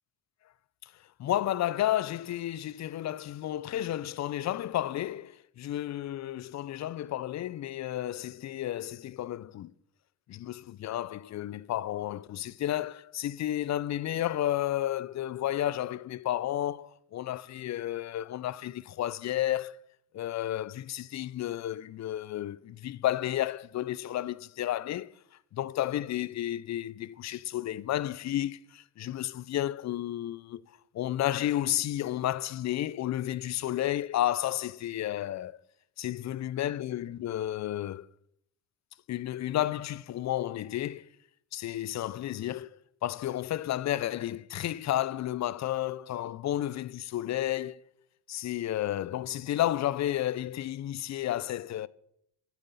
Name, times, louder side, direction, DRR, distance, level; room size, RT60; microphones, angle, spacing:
voice 1, 1.2-9.7 10.3-19.8 20.1-25.1 25.5-30.6 30.9-35.6 36.0-38.1 39.1-41.1 41.5-42.7 43.0-47.8 48.3-51.9, left 13 dB, 40° left, 0.5 m, -32 dB
12.0 x 7.5 x 5.5 m
supercardioid pair, 65°, 41 cm